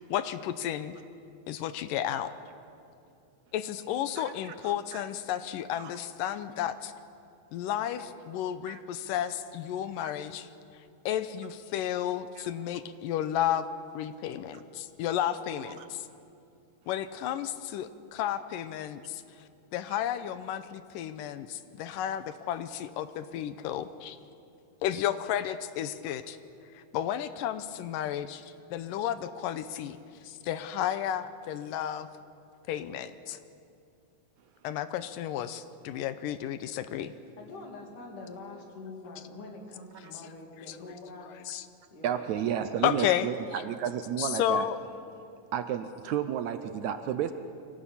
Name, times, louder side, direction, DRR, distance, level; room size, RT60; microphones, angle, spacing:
voice 1, 0.1-0.9 1.5-2.3 3.5-6.9 7.5-10.5 11.1-13.7 13.9-16.1 16.9-19.2 19.7-24.2 24.8-26.4 26.7-30.0 30.2-32.1 32.7-33.4 34.6-37.1 40.7-40.8 41.3-41.7 42.8-43.3 43.5-43.6 44.2-44.8, left 11 dB, 85° left, 12 dB, 2.4 m, -32 dB
voice 2, 4.2-4.6 4.9-5.0 5.8-5.9 8.7-8.8 10.0-10.1 15.8-15.9 19.9-20.0 42.0-44.7 45.5-47.3, right 9 dB, 75° right, 9 dB, 1.9 m, -32 dB
voice 3, 37.4-41.3 41.9-42.4 42.7-42.8, left 3 dB, 65° left, 1 dB, 4.3 m, -45 dB
24.0 x 18.0 x 8.5 m, 2.5 s
omnidirectional pair, 3.9 m